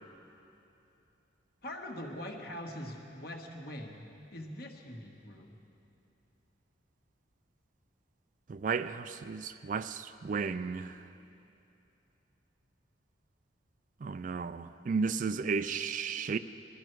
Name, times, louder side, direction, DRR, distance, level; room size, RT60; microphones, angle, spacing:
voice 1, 1.6-4.1 4.3-5.5, left 1 dB, 50° left, 1 dB, 1.5 m, -42 dB
voice 2, 8.5-10.9 14.0-16.4, right 5 dB, 40° right, 12 dB, 0.3 m, -33 dB
20.5 x 13.0 x 4.6 m, 2.8 s
head